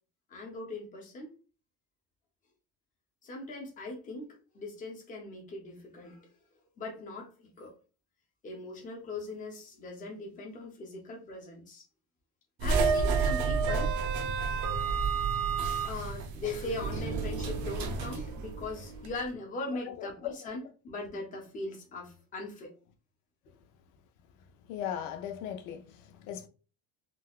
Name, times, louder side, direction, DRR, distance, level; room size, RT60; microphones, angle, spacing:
voice 1, 0.3-1.3 3.2-4.3 4.5-6.3 6.8-7.7 8.4-11.8 12.6-13.9 15.9-22.7, left 2 dB, 25° left, 0.7 m, -40 dB
sound 1, 12.6-19.1, right 5 dB, 55° right, 0.6 m, -30 dB
voice 2, 24.7-26.5, left 9 dB, 85° left, 0.6 m, -38 dB
3.8 x 2.2 x 2.4 m
cardioid pair, 180°, 34 cm